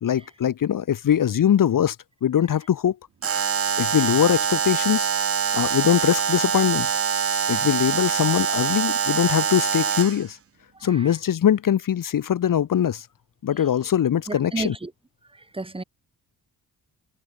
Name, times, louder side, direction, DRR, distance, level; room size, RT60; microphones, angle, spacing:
voice 1, 0.0-2.0 2.2-3.0 3.8-5.1 5.5-6.9 7.5-10.4 10.8-13.0 13.4-14.7, left 9 dB, 60° left, 1.4 m, -22 dB
Alarm, 3.2-10.2, right 7 dB, 35° right, 1.1 m, -24 dB
voice 2, 10.7-11.2 13.5-13.9 14.3-14.9 15.3-15.8, right 2 dB, 15° right, 3.6 m, -35 dB
wide cardioid pair, 180°, 37 cm